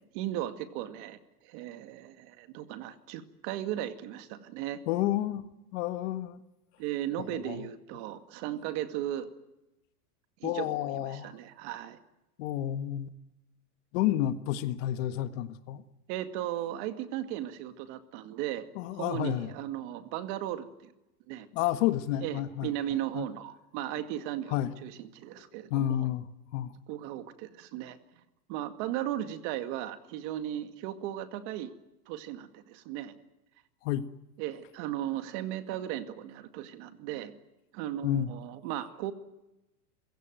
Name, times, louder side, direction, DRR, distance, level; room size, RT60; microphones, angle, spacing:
voice 1, 0.0-4.8 6.8-9.3 10.4-12.0 16.1-18.7 19.0-20.9 21.3-21.5 22.2-26.1 26.9-28.0 28.5-31.7 32.1-33.2 34.4-37.3 37.7-39.1, right 12 dB, 45° right, 10 dB, 2.2 m, -36 dB
voice 2, 4.9-5.4 5.7-6.4 7.2-7.7 10.4-11.3 12.4-13.1 13.9-15.8 18.7-19.5 21.5-22.7 23.1-23.3 24.5-24.7 25.7-26.3 26.5-26.7 33.8-34.0 38.0-38.3, left 13 dB, 50° left, 12 dB, 1.6 m, -30 dB
29.0 x 16.5 x 9.2 m, 0.94 s
supercardioid pair, 150°, 46 cm